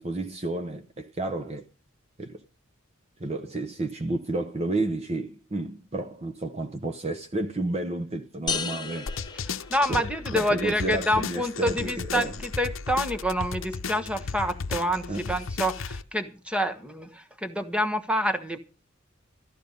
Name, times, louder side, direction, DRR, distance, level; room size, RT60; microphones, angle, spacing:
voice 1, 0.0-1.6 2.2-2.4 3.2-9.1 9.9-10.0 10.3-12.4 15.1-15.3, right 2 dB, 30° right, 0.9 m, -31 dB
sound 1, 8.5-10.3, left 5 dB, 20° left, 1.2 m, -34 dB
sound 2, 9.1-16.0, left 5 dB, 70° left, 0.8 m, -35 dB
voice 2, 9.5-18.6, equal, 5° right, 1.3 m, -27 dB
14.0 x 11.0 x 5.4 m
head